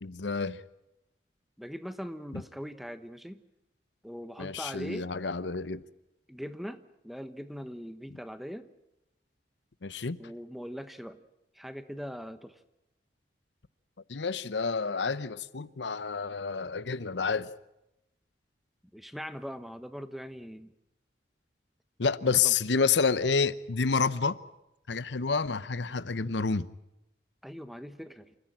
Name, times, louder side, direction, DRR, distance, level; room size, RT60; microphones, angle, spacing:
voice 1, 0.0-0.6 2.3-2.4 4.4-5.8 9.8-10.2 14.1-17.5 22.0-24.4 24.9-26.7, left 5 dB, 85° left, 0.8 m, -29 dB
voice 2, 1.6-3.4 4.0-5.1 6.3-8.7 10.2-11.2 11.5-12.6 18.9-20.7 22.2-22.5 27.4-28.4, equal, ahead, 1.0 m, -41 dB
27.5 x 15.0 x 8.9 m
head